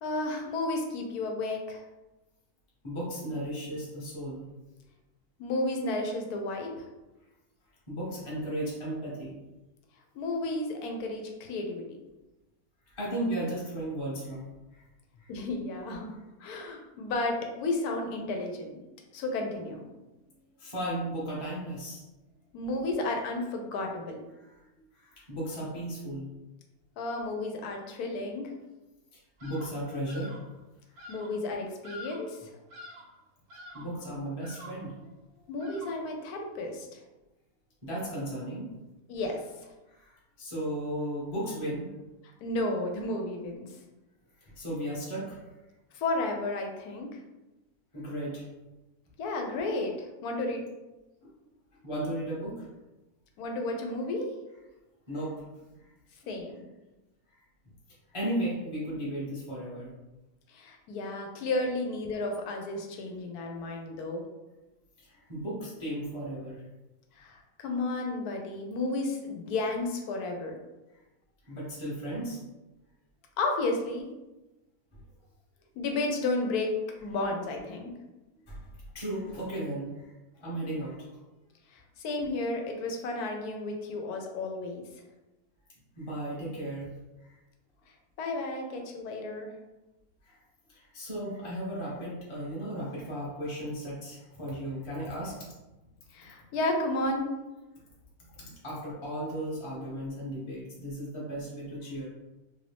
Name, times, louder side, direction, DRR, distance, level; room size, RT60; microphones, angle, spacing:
voice 1, 0.0-1.8 5.4-6.9 10.1-11.8 15.3-18.7 19.1-19.9 22.5-24.2 27.0-28.5 31.1-32.5 35.5-37.0 39.1-39.7 42.4-43.8 45.9-47.2 49.2-50.6 53.4-54.3 56.3-56.6 60.5-64.2 67.2-70.5 73.4-74.1 75.8-76.7 77.0-77.9 81.7-84.8 88.2-89.5 96.1-97.3, left 2 dB, 90° left, 3 dB, 1.1 m, -32 dB
voice 2, 2.8-4.5 7.9-9.4 12.9-14.8 15.2-15.3 16.6-16.7 20.6-22.0 24.4-24.5 24.9-26.3 29.1-30.3 31.0-31.1 33.7-35.4 37.8-38.7 39.9-41.9 44.4-45.4 47.9-48.5 51.2-51.3 51.8-52.7 55.1-55.3 55.8-55.9 58.1-59.9 65.0-66.6 71.4-72.4 74.9-75.0 78.5-78.6 78.9-80.1 80.4-81.1 86.0-86.9 87.2-87.4 90.2-90.4 90.7-95.5 98.4-102.1, right 1 dB, 25° left, -6 dB, 0.8 m, -35 dB
Bird vocalization bird call bird song, 29.4-29.8 30.1-30.5 31.0-31.4 31.8-32.4 32.7-33.2 33.5-34.0 34.4-34.9 35.6-36.1, left 1 dB, 85° right, 1.3 m, -47 dB
3.0 x 2.6 x 3.3 m, 1.0 s
omnidirectional pair, 1.6 m